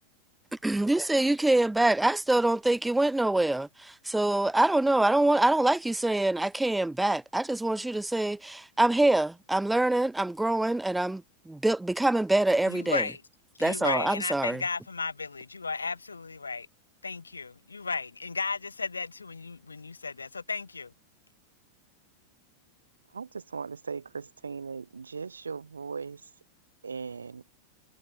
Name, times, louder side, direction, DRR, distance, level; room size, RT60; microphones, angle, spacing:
voice 1, 0.6-13.0 13.6-14.6, right 2 dB, 5° right, 0.9 m, -25 dB
voice 2, 12.7-13.2 13.6-16.7 17.0-20.9, left 4 dB, 75° left, 3.0 m, -34 dB
voice 3, 23.1-26.3 26.8-27.4, right 5 dB, 75° right, 2.0 m, -38 dB
figure-of-eight pair, 90°, 0 cm